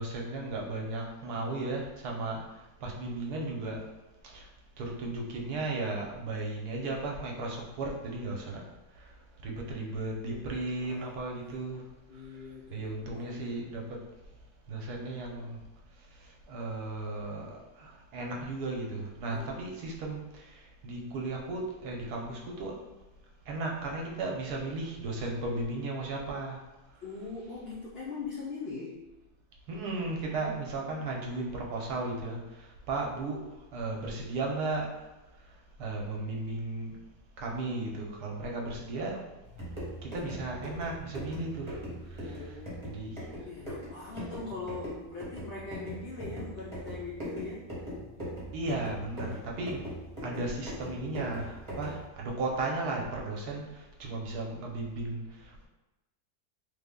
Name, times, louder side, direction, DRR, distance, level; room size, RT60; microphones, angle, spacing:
voice 1, 0.0-2.4 2.8-3.8 4.3-4.5 4.8-8.6 9.4-11.8 12.7-14.0 14.7-15.6 16.5-22.8 23.5-26.6 29.7-32.4 32.9-33.4 33.7-34.9 35.8-37.0 37.4-39.2 40.0-41.8 42.1-42.6 42.9-43.1 48.5-49.9 50.2-55.7, right 2 dB, 85° right, 0 dB, 1.2 m, -35 dB
voice 2, 10.3-11.1 11.4-11.7 12.1-13.6 19.3-19.6 27.0-29.0 30.3-31.1 42.2-43.1 43.5-47.6, left 4 dB, 85° left, -5 dB, 0.5 m, -42 dB
sound 1, 39.4-52.1, equal, 25° right, 0.8 m, -41 dB
3.4 x 2.1 x 3.6 m, 1.0 s
omnidirectional pair, 1.6 m